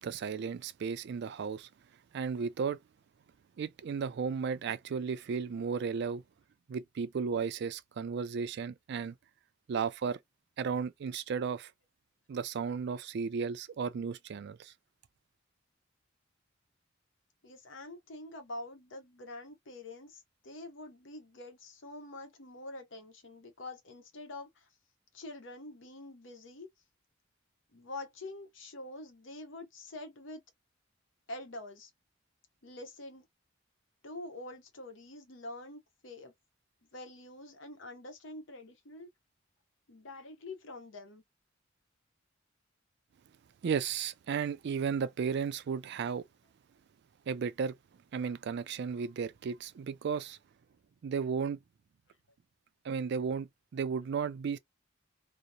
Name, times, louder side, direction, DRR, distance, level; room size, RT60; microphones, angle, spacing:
voice 1, 0.0-1.7 2.1-2.8 3.6-6.2 6.7-9.1 9.7-10.2 10.6-11.7 12.3-14.7 43.6-46.2 47.3-47.7 48.1-50.4 51.0-51.6 52.8-54.6, right 6 dB, 60° right, 0.3 m, -34 dB
voice 2, 17.4-24.7 25.1-26.7 27.7-30.4 31.3-31.9 32.6-33.3 34.0-36.3 36.8-39.1 39.9-41.2, left 2 dB, 70° left, 0.8 m, -46 dB
2.8 x 2.0 x 2.3 m
head